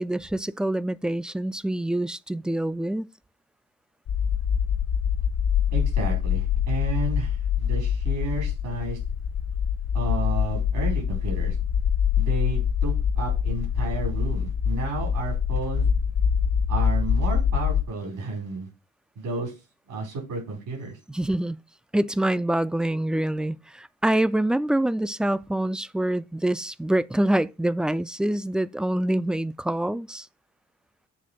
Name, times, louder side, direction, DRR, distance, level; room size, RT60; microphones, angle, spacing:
voice 1, 0.0-3.1 21.1-21.6 21.9-30.3, right 1 dB, 5° right, 0.3 m, -25 dB
sound 1, 4.1-17.9, left 7 dB, 70° left, 0.8 m, -24 dB
voice 2, 5.7-9.0 9.9-11.5 12.2-15.9 16.7-18.7 19.1-19.5 19.9-21.0, right 3 dB, 85° right, 5.0 m, -32 dB
8.3 x 3.4 x 6.4 m
cardioid pair, 90°, 30 cm